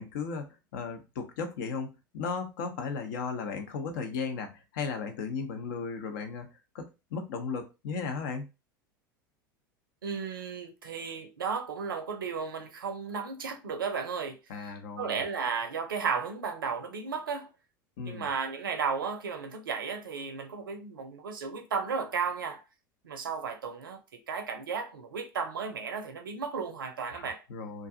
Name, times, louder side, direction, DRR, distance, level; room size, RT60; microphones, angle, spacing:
voice 1, 0.0-1.9 2.1-8.5 14.5-15.2 18.0-18.3 27.1-27.9, left 5 dB, 60° left, 0.7 m, -36 dB
voice 2, 10.0-14.4 15.0-17.5 18.0-22.6 23.0-24.0 24.3-27.4, right 5 dB, 75° right, 0.6 m, -34 dB
2.5 x 2.3 x 2.6 m
figure-of-eight pair, 80°, 11 cm